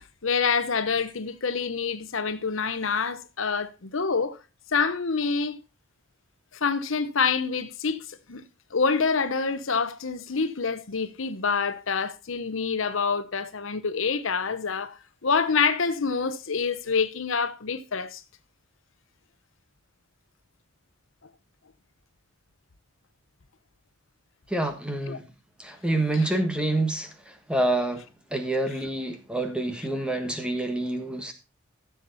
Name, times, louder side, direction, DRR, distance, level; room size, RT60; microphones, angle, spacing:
voice 1, 0.0-4.4 4.7-5.6 6.6-8.4 8.7-18.2 25.1-25.2 26.1-26.3, left 5 dB, 70° left, 0.9 m, -27 dB
voice 2, 24.5-25.2 25.6-28.0 28.3-31.3, right 2 dB, 5° right, 1.3 m, -27 dB
14.5 x 7.3 x 4.0 m
head